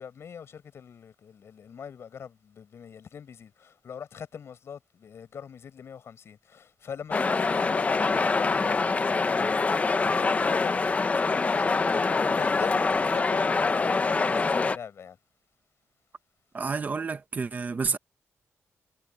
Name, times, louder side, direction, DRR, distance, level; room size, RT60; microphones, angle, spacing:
voice 1, 0.0-15.2, left 7 dB, 60° left, 5.5 m, -42 dB
sound 1, 7.1-14.8, left 4 dB, 30° left, 1.0 m, -25 dB
voice 2, 16.5-18.0, right 5 dB, 35° right, 1.3 m, -30 dB
wide cardioid pair, 125°, 5 cm